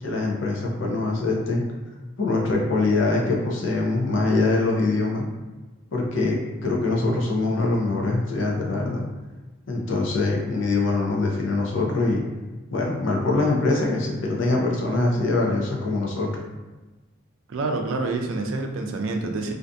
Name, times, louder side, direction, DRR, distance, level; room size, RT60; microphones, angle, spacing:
voice 1, 0.0-1.6 2.2-5.3 5.9-9.0 9.7-12.2 12.7-16.4, left 2 dB, 65° left, -1 dB, 0.5 m, -23 dB
voice 2, 17.5-19.5, right 3 dB, 70° right, 4 dB, 0.4 m, -27 dB
2.5 x 2.5 x 2.3 m, 1.2 s
head